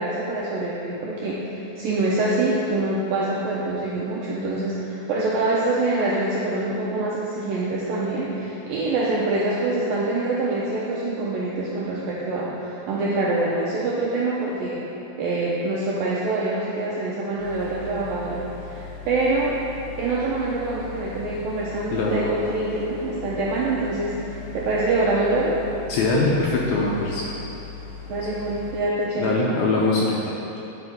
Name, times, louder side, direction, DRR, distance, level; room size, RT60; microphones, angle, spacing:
voice 1, 0.0-14.8 15.2-19.6 20.0-25.6 28.1-29.6, right 2 dB, 85° right, -6 dB, 2.0 m, -25 dB
sound 1, 17.4-28.8, left 5 dB, 45° left, 2.7 m, -39 dB
voice 2, 21.9-22.3 25.9-27.3 29.2-30.6, left 3 dB, 80° left, -3 dB, 2.3 m, -23 dB
11.0 x 5.3 x 5.6 m, 2.9 s
omnidirectional pair, 5.1 m